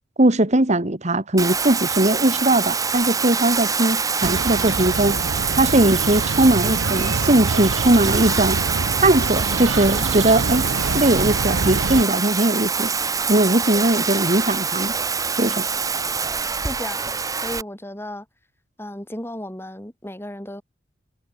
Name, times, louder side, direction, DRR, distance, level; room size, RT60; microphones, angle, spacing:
voice 1, 0.2-5.2 5.6-8.6 9.0-10.6 10.9-12.9 13.3-14.9 15.4-15.7, right 1 dB, 40° right, 1.8 m, -19 dB
Bathtub (filling or washing), 1.4-17.6, right 5 dB, 20° right, 0.9 m, -25 dB
sound 1, 4.2-12.0, right 4 dB, 85° right, 0.7 m, -26 dB
voice 2, 16.6-17.1 17.4-18.2 18.8-20.6, left 1 dB, 15° left, 3.8 m, -34 dB
head